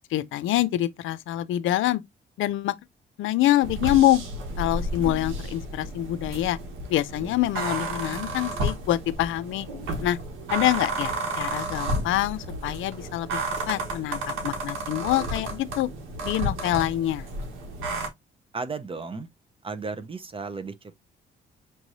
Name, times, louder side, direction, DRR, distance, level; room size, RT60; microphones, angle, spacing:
voice 1, 0.1-2.0 2.4-2.7 3.2-4.2 4.6-6.6 6.9-9.7 10.0-10.2 10.5-13.4 13.7-15.9 16.2-17.3, left 14 dB, 80° left, 0.5 m, -25 dB
sound 1, 3.6-18.1, right 1 dB, 85° right, 1.4 m, -32 dB
voice 2, 18.5-19.3 19.6-21.0, right 4 dB, 25° right, 0.7 m, -34 dB
5.9 x 3.1 x 2.6 m
cardioid pair, 90°, 20 cm